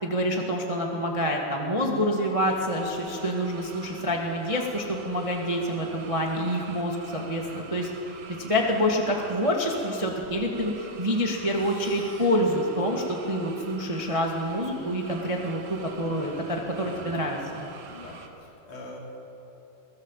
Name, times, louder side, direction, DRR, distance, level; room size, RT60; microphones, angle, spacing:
voice 1, 0.0-7.9 8.4-17.4, equal, 15° right, 0 dB, 1.4 m, -27 dB
sound 1, 2.4-18.3, right 4 dB, 90° right, 3.5 m, -46 dB
sound 2, 11.5-13.5, left 1 dB, 15° left, 7.2 m, -52 dB
voice 2, 16.8-17.2 17.9-19.0, left 1 dB, 65° left, -2 dB, 4.9 m, -44 dB
23.0 x 19.0 x 7.6 m, 3.0 s
omnidirectional pair, 3.8 m